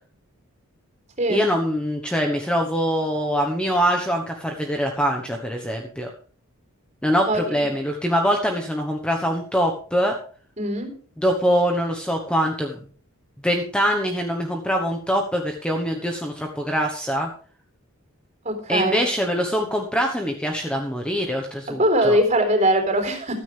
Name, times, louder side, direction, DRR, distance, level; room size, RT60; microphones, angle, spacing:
voice 1, 1.3-6.1 7.0-10.1 11.2-12.8 13.4-17.3 18.7-22.2, equal, 5° left, 2 dB, 1.1 m, -23 dB
voice 2, 7.3-7.6 10.6-10.9 18.4-19.0 21.8-23.4, right 1 dB, 30° right, 4 dB, 3.9 m, -21 dB
14.5 x 13.0 x 3.4 m, 0.43 s
head